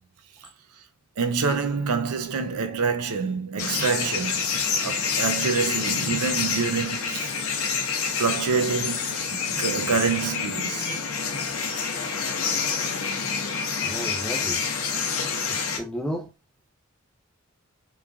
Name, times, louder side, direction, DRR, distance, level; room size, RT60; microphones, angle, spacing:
voice 1, 1.2-7.4 8.2-10.9, right 5 dB, 80° right, 0.5 m, -27 dB
sound 1, 3.6-15.8, left 5 dB, 70° left, 0.6 m, -27 dB
voice 2, 13.8-14.6 15.5-16.3, equal, 5° left, 0.3 m, -33 dB
3.0 x 2.3 x 2.4 m
head